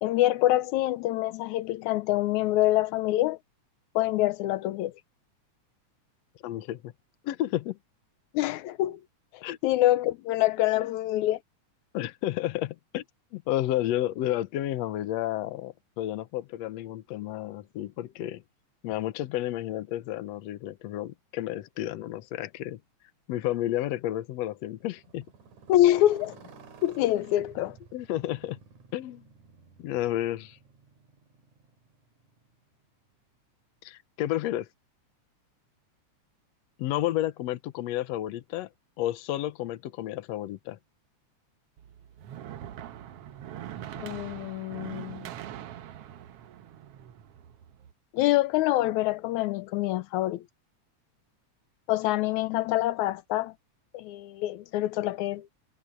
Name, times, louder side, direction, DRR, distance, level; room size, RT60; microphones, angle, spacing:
voice 1, 0.0-3.4 4.0-4.9 8.3-9.0 9.6-11.4 25.7-26.4 26.8-27.8 44.0-45.3 48.1-50.4 51.9-53.5 53.9-55.5, left 15 dB, 90° left, 2.1 m, -25 dB
voice 2, 6.4-6.9 7.2-7.8 9.4-9.6 10.8-10.9 11.9-13.0 13.3-18.4 18.8-22.8 23.3-25.3 27.9-28.6 28.9-29.2 29.8-30.6 33.8-34.7 36.8-38.7 39.0-40.8, left 13 dB, 70° left, 2.0 m, -31 dB
Motorcycle, 24.8-32.9, right 5 dB, 80° right, 3.7 m, -53 dB
sound 1, 41.8-47.9, right 11 dB, 65° right, 1.7 m, -42 dB
omnidirectional pair, 3.3 m